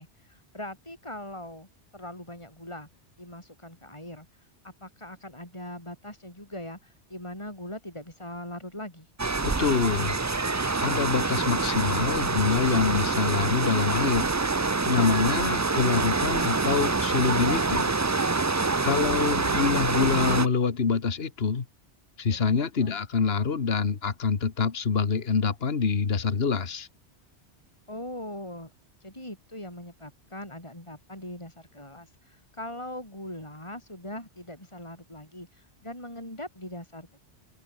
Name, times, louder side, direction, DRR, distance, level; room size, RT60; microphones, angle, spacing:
voice 1, 0.0-1.7 1.9-2.9 3.2-4.3 4.6-9.1 22.3-22.9 27.9-28.7 29.0-37.2, left 1 dB, 25° left, 6.9 m, -41 dB
sound 1, 9.2-20.5, right 3 dB, 25° right, 0.4 m, -26 dB
voice 2, 9.4-10.1 10.8-14.3 14.9-17.9 18.8-21.7 22.2-26.9, left 5 dB, 60° left, 1.8 m, -26 dB
open air
omnidirectional pair, 1.2 m